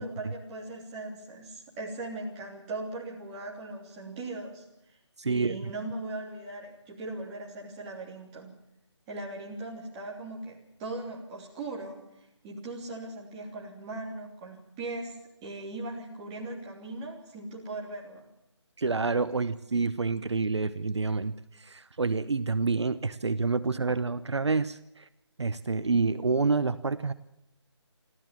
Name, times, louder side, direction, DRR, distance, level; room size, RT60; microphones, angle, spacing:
voice 1, 0.0-5.0 5.3-8.5 9.1-12.0 12.4-18.2, right 2 dB, 15° right, -2 dB, 3.2 m, -39 dB
voice 2, 5.2-5.7 18.8-25.1 25.4-27.1, right 4 dB, 70° right, 14 dB, 0.9 m, -28 dB
28.0 x 13.0 x 7.5 m, 0.86 s
figure-of-eight pair, 165°, 15 cm